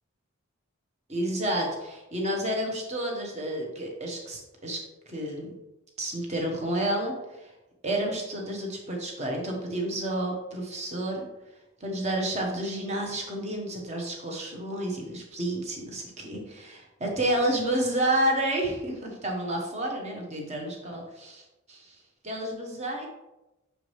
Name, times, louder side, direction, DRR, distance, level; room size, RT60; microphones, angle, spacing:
voice 1, 1.1-4.8 5.1-5.5 6.0-7.5 7.8-11.2 11.8-21.8 22.2-23.1, right 1 dB, 30° right, 0 dB, 1.1 m, -30 dB
6.4 x 4.7 x 3.2 m, 1.0 s
head